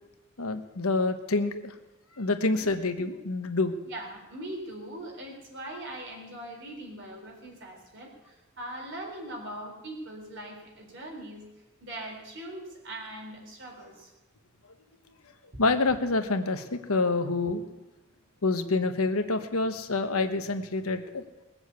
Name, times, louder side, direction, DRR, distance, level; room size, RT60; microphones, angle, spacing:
voice 1, 0.4-1.7 2.2-3.7 15.6-17.6 18.4-21.2, left 3 dB, 80° left, 7 dB, 1.2 m, -27 dB
voice 2, 3.9-11.4 11.8-14.1 15.5-15.6, right 1 dB, 55° right, 0 dB, 4.1 m, -41 dB
20.0 x 7.2 x 8.3 m, 1.0 s
head